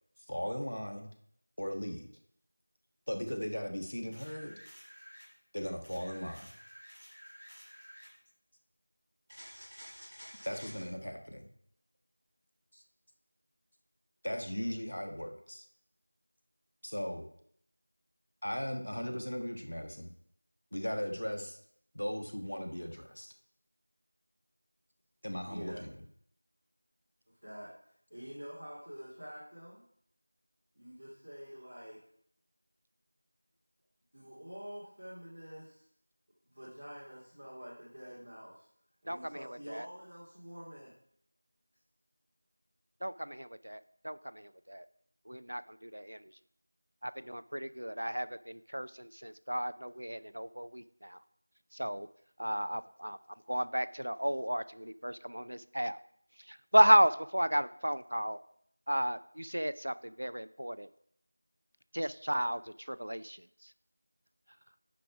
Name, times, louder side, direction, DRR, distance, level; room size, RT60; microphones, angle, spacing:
voice 1, 0.3-1.1 1.6-2.1 3.1-4.6 5.5-6.5 10.4-11.5 12.7-12.8 14.2-15.7 16.8-17.2 18.4-20.1 20.7-21.6 21.9-23.3 25.2-26.0, equal, 55° left, 5 dB, 1.3 m, -37 dB
sound 1, 4.1-5.3 5.8-8.1 9.3-10.8 14.3-14.4, equal, 15° right, 3.9 m, -52 dB
voice 2, 25.5-25.8 27.4-27.7 28.1-29.8 30.8-32.0 34.1-35.8 36.5-38.7 39.0-40.9, equal, 35° right, -9 dB, 2.1 m, -47 dB
voice 3, 39.1-39.9 43.0-44.8 45.3-46.2 47.0-51.2 51.7-52.1 52.4-53.2 53.5-56.0 56.5-58.4 58.9-60.9 61.9-63.4, equal, 55° right, 15 dB, 0.4 m, -32 dB
10.5 x 5.1 x 4.7 m, 0.66 s
figure-of-eight pair, 175°, 0 cm